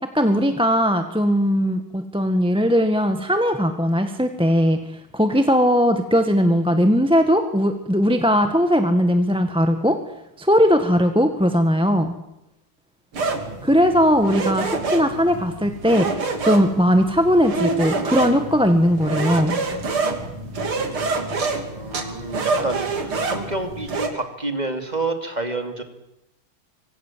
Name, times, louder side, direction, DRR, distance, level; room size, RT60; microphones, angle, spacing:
voice 1, 0.0-4.8 5.1-10.0 10.4-12.1 13.6-16.1 16.4-19.6, equal, 5° right, 6 dB, 1.4 m, -19 dB
sound 1, 13.1-24.1, right 3 dB, 90° right, 3.8 m, -27 dB
voice 2, 21.7-25.8, right 2 dB, 20° right, 6 dB, 3.0 m, -29 dB
25.5 x 25.0 x 7.6 m, 0.86 s
omnidirectional pair, 2.3 m